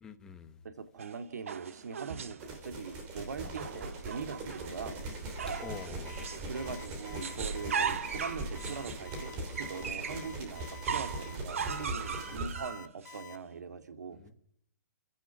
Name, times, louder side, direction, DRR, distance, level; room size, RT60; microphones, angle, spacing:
voice 1, 0.0-0.6 3.4-3.6 5.6-6.3 12.3-12.4 14.1-14.3, left 6 dB, 5° left, 1.0 m, -47 dB
voice 2, 0.6-5.0 6.3-14.2, right 5 dB, 65° right, 2.5 m, -42 dB
sound 1, 1.0-2.5 3.4-4.8 5.4-6.5 6.8-10.3 10.8-13.2, right 7 dB, 45° right, 1.6 m, -38 dB
sound 2, 2.4-12.5, right 2 dB, 15° right, 3.0 m, -41 dB
Alarm, 5.6-13.4, left 7 dB, 80° left, 3.2 m, -49 dB
29.5 x 17.0 x 6.1 m
hypercardioid pair, 180°, 10 cm